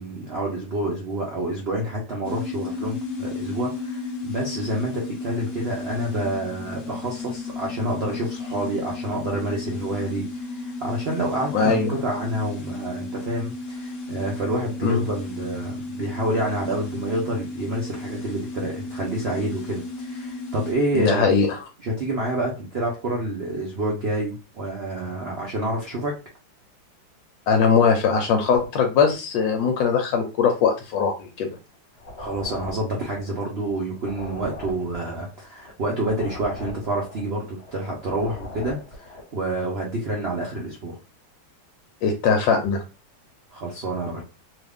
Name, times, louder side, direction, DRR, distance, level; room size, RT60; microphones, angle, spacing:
voice 1, 0.0-21.3 21.8-26.1 32.2-41.0 43.5-44.2, right 1 dB, 70° right, -2 dB, 0.6 m, -28 dB
sound 1, 2.2-20.7, left 3 dB, 55° left, 0.9 m, -34 dB
voice 2, 11.5-11.9 14.8-15.0 20.9-21.6 27.5-31.5 42.0-42.8, left 6 dB, 75° left, 4 dB, 1.3 m, -20 dB
sound 2, 32.0-39.3, left 2 dB, 40° left, 1.3 m, -40 dB
3.0 x 2.4 x 3.4 m, 0.31 s
omnidirectional pair, 2.1 m